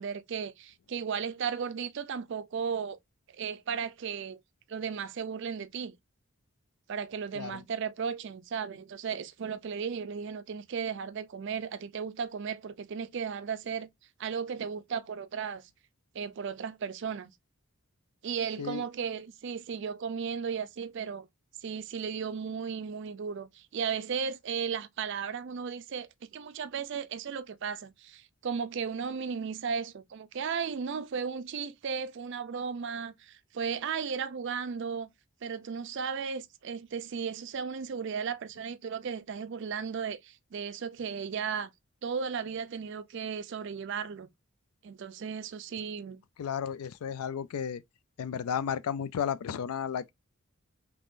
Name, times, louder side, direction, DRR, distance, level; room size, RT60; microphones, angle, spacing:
voice 1, 0.0-3.0 3.3-4.4 4.7-6.0 6.9-13.9 14.2-15.7 16.1-17.3 18.2-21.3 21.6-35.1 35.4-41.7 42.0-44.3 44.8-46.2, right 6 dB, 55° right, 0.4 m, -35 dB
voice 2, 46.4-47.8 48.2-50.1, left 8 dB, 85° left, 0.4 m, -33 dB
3.5 x 3.0 x 2.5 m
head